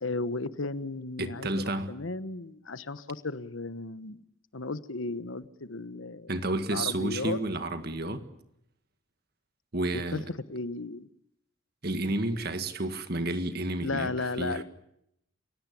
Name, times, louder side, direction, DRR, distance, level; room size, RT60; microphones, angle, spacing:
voice 1, 0.0-1.6 1.9-4.2 4.5-6.3 6.7-7.4 9.9-10.2 10.5-11.1 13.8-14.6, left 3 dB, 75° left, 1.1 m, -34 dB
voice 2, 1.2-1.9 6.3-8.2 9.7-10.3 11.8-14.1 14.4-14.6, right 2 dB, 50° right, 1.9 m, -31 dB
29.5 x 16.5 x 8.6 m
head